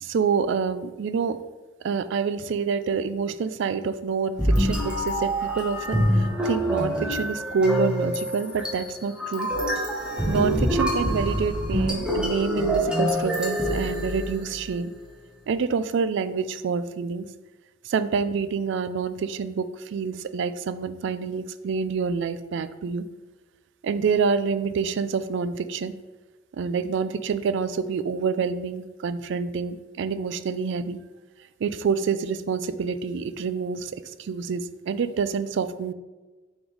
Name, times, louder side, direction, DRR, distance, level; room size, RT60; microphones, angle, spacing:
voice 1, 0.0-1.4 1.8-9.5 10.3-14.9 15.5-17.3 17.8-23.1 23.8-25.9 26.5-31.0 31.6-35.9, right 5 dB, 65° right, 13 dB, 0.3 m, -27 dB
sound 1, 4.4-14.7, equal, 5° right, 1.0 m, -25 dB
6.1 x 3.6 x 4.7 m, 1.3 s
head